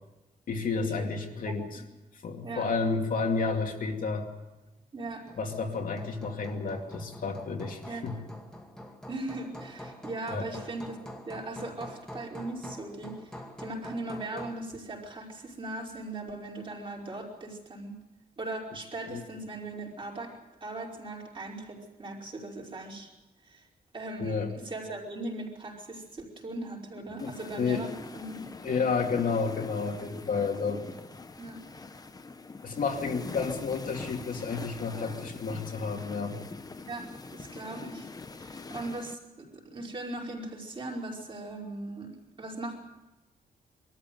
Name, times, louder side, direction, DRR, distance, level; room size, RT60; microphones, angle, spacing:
voice 1, 0.5-1.8 2.2-4.3 5.4-8.2 10.3-10.5 19.1-19.2 24.2-24.5 27.2-27.9 28.6-30.8 32.6-36.4, left 4 dB, 60° left, 2 dB, 2.4 m, -31 dB
voice 2, 4.9-5.2 7.8-8.1 9.1-11.0 11.3-18.0 18.4-20.3 20.6-23.1 23.4-23.7 23.9-28.4 28.7-28.8 31.4-31.6 36.9-37.1 37.3-38.1 38.4-42.1 42.4-42.8, right 2 dB, 30° right, -2 dB, 5.0 m, -39 dB
Hammer, 5.0-14.7, equal, 5° left, 2.3 m, -45 dB
sound 1, 27.2-39.1, left 3 dB, 25° left, 0.9 m, -43 dB
23.0 x 14.0 x 9.2 m, 1.0 s
wide cardioid pair, 160°, 16 cm